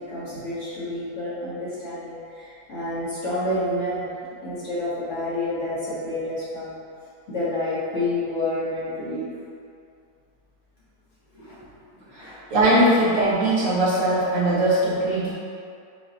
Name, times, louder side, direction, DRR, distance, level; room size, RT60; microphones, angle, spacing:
voice 1, 0.0-6.8 7.3-9.3 11.3-11.6 12.1-12.5, left 1 dB, 50° left, -10 dB, 1.7 m, -29 dB
voice 2, 12.5-15.3, right 1 dB, 55° right, -9 dB, 1.5 m, -20 dB
6.8 x 2.8 x 2.8 m, 2.4 s
omnidirectional pair, 1.7 m